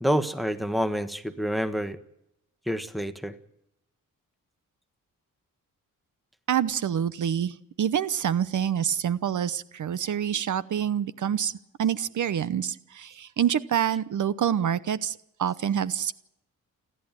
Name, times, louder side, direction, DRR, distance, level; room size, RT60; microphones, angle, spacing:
voice 1, 0.0-2.0 2.7-3.3, equal, ahead, 10 dB, 1.4 m, -27 dB
voice 2, 6.5-11.5 11.8-16.1, right 9 dB, 60° right, 15 dB, 0.9 m, -27 dB
29.5 x 11.0 x 9.1 m, 0.80 s
wide cardioid pair, 130°, 33 cm